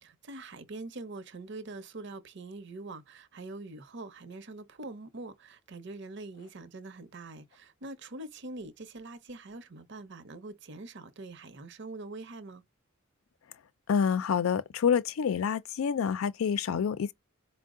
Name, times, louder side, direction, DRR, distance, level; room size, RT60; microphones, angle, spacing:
voice 1, 0.0-12.6, right 2 dB, 60° right, 0.7 m, -44 dB
voice 2, 13.9-17.1, left 7 dB, 85° left, 0.4 m, -27 dB
4.4 x 2.0 x 3.6 m
head